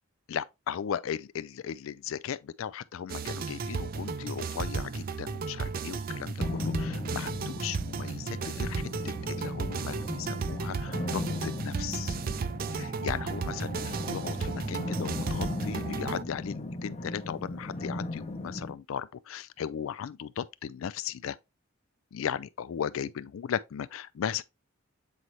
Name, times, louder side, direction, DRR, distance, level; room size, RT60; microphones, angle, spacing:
voice 1, 0.3-8.9 9.3-12.2 12.7-21.4 22.1-24.4, left 8 dB, 90° left, 0.4 m, -37 dB
sound 1, 3.1-16.2, right 5 dB, 45° right, 0.4 m, -34 dB
sound 2, 6.4-18.7, left 2 dB, 35° left, 0.7 m, -37 dB
7.7 x 4.1 x 3.0 m
head